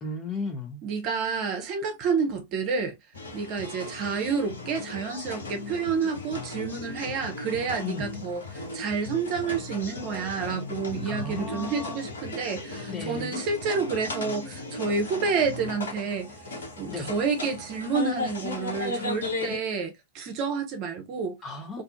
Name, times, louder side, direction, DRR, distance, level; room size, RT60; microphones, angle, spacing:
voice 1, 0.0-0.8 7.8-8.1 11.1-12.1 12.9-13.3 16.9-17.1 21.4-21.8, left 3 dB, 20° left, 0.8 m, -35 dB
voice 2, 0.8-2.9 3.3-8.4 8.7-16.3 16.8-21.4 21.7-21.8, right 5 dB, 40° right, 0.7 m, -29 dB
sound 1, 3.1-19.6, left 2 dB, 70° left, 0.8 m, -36 dB
2.6 x 2.3 x 2.4 m
figure-of-eight pair, 90°, 0 cm